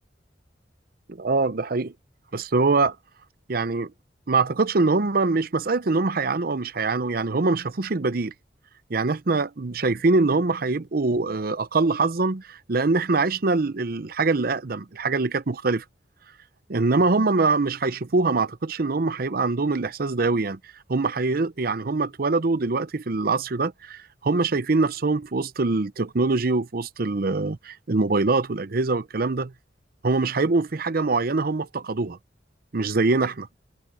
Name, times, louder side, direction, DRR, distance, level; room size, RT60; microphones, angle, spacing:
voice 1, 1.1-1.9 2.3-3.0 3.5-3.9 4.3-8.3 8.9-15.8 16.7-20.6 20.9-29.5 30.0-32.2 32.7-33.5, right 3 dB, 55° right, 0.7 m, -23 dB
head